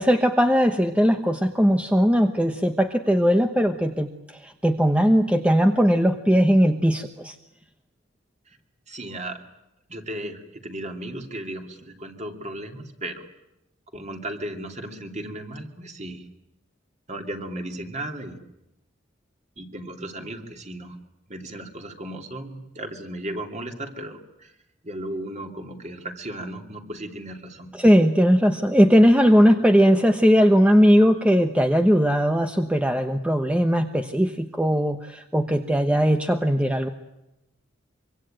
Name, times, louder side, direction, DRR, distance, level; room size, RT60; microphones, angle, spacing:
voice 1, 0.0-4.1 4.4-7.3 27.7-36.9, equal, 5° right, 5 dB, 1.0 m, -19 dB
voice 2, 8.9-9.4 9.9-13.2 13.9-16.2 17.1-18.4 19.6-21.0 21.3-24.5 24.8-27.7, right 1 dB, 35° right, 3 dB, 3.0 m, -35 dB
25.0 x 24.5 x 9.1 m, 0.91 s
head